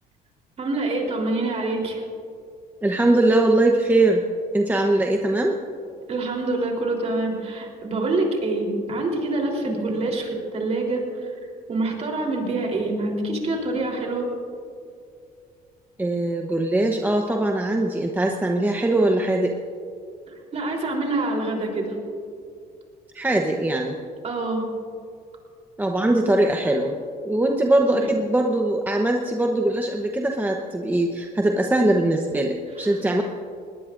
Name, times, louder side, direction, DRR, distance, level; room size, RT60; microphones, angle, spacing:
voice 1, 0.6-2.0 6.1-11.3 11.7-14.3 20.5-22.0 24.2-24.7 27.9-28.1 32.8-33.0, right 2 dB, 40° right, 0 dB, 3.6 m, -26 dB
voice 2, 2.8-4.2 4.5-5.6 9.7-9.9 16.0-19.5 23.1-24.0 25.8-27.0 27.2-33.2, right 1 dB, 10° right, 2 dB, 0.9 m, -21 dB
21.0 x 18.0 x 2.6 m, 2.4 s
cardioid pair, 110°, 17 cm